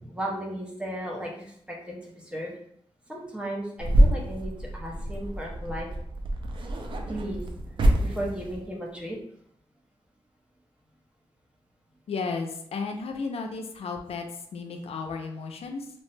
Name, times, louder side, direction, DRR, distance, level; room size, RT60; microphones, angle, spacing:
voice 1, 0.0-1.3 1.7-2.6 3.1-5.9 7.1-7.4 8.0-9.2, right 1 dB, 10° right, -2 dB, 0.6 m, -35 dB
sound 1, 3.8-8.7, right 1 dB, 55° right, 0.4 m, -26 dB
voice 2, 12.1-14.2 14.5-15.9, left 4 dB, 80° left, 4 dB, 0.4 m, -33 dB
2.8 x 2.1 x 3.1 m, 0.67 s
wide cardioid pair, 155°, 10 cm